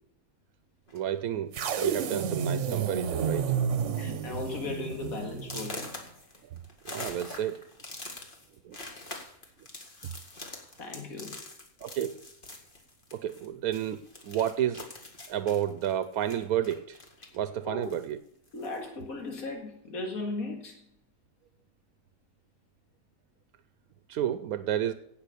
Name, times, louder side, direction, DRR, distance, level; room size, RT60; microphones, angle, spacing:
sound 1, 0.9-1.2 2.0-2.1 2.5-2.8 3.1-3.5 3.9-4.0 4.5-4.6 5.4-13.5 13.7-17.4 17.8-18.8, left 2 dB, 35° left, 2.1 m, -44 dB
voice 1, 0.9-3.6 6.5-6.6 6.8-7.6 8.6-8.8 10.0-10.1 11.8-12.2 13.1-14.8 15.3-17.0 17.3-18.2 24.1-24.9, right 10 dB, 90° right, 12 dB, 1.1 m, -31 dB
sound 2, 1.5-5.8, right 7 dB, 60° right, 1.1 m, -31 dB
voice 2, 4.0-5.8 10.8-11.4 17.6-17.9 18.5-20.9, left 3 dB, 75° left, 2 dB, 2.4 m, -37 dB
17.0 x 5.9 x 6.8 m, 0.72 s
omnidirectional pair, 1.5 m